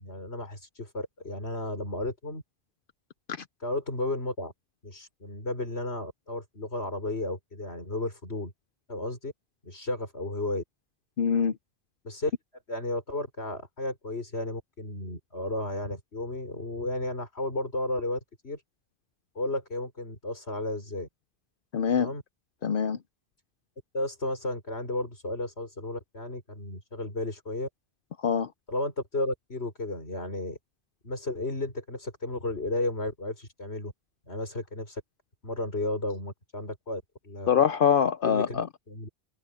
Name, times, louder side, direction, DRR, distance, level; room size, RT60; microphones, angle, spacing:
voice 1, 0.0-2.4 3.6-4.5 4.8-8.5 8.9-9.3 9.6-10.6 12.0-12.3 12.7-18.6 19.4-21.1 22.0-22.2 23.9-27.7 28.7-30.6 31.0-33.9 34.3-35.0 35.4-37.5 38.2-38.6 38.9-39.1, left 2 dB, 85° left, 5.7 m, -33 dB
voice 2, 11.2-11.5 21.7-22.1 22.6-23.0 28.2-28.5 37.5-38.7, left 7 dB, 60° left, 0.7 m, -24 dB
omnidirectional pair, 1.1 m